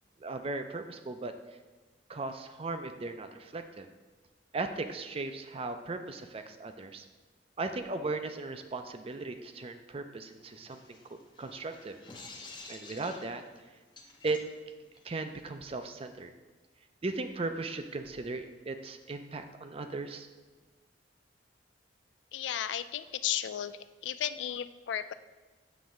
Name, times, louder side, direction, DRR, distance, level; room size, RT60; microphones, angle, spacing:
voice 1, 0.2-1.3 2.1-3.9 4.5-7.1 7.6-12.0 12.7-13.4 14.2-14.4 15.0-16.3 17.0-20.3, right 3 dB, 30° right, 8 dB, 0.4 m, -37 dB
sound 1, 10.2-15.5, left 3 dB, 25° left, 0.7 m, -51 dB
voice 2, 22.3-23.8 24.0-25.1, left 11 dB, 75° left, 14 dB, 0.3 m, -34 dB
7.2 x 3.4 x 6.3 m, 1.3 s
head